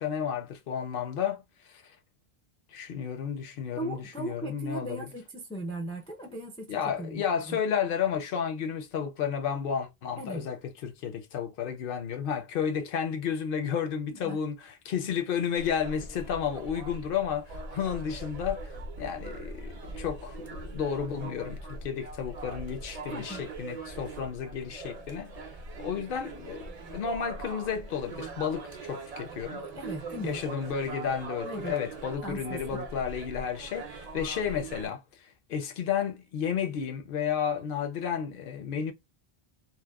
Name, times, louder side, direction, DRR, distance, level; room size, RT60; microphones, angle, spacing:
voice 1, 0.0-1.8 2.7-5.1 6.7-25.3 25.8-29.6 30.2-38.9, left 7 dB, 65° left, 0.7 m, -32 dB
voice 2, 3.8-7.6 10.2-10.5 14.1-14.4 23.1-23.4 29.6-30.4 31.4-31.8 32.2-32.8, right 1 dB, 10° left, 0.3 m, -38 dB
sound 1, 15.6-34.9, right 3 dB, 45° right, 0.5 m, -41 dB
2.8 x 2.1 x 2.2 m
omnidirectional pair, 1.1 m